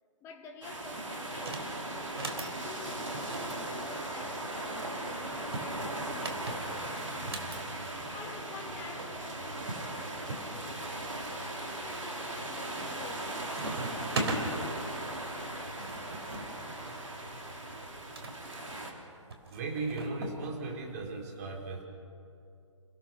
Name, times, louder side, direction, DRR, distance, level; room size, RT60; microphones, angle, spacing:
voice 1, 0.2-1.7 2.5-7.4 8.1-10.8 11.3-14.8, left 5 dB, 15° left, 1.7 m, -50 dB
sound 1, 0.6-18.9, right 1 dB, 75° right, 3.8 m, -38 dB
sound 2, 1.4-1.7 2.1-2.5 3.1-4.5 5.3-7.6 8.7-8.8 9.0-9.1 9.7-10.5 11.0-11.5 12.1-12.5 12.8-13.2 13.5-14.4 15.4-18.4 19.3-20.4, right 2 dB, 55° right, 3.6 m, -39 dB
voice 2, 19.4-21.8, right 3 dB, 30° right, 4.0 m, -37 dB
29.0 x 17.0 x 6.2 m
figure-of-eight pair, 140°, 16 cm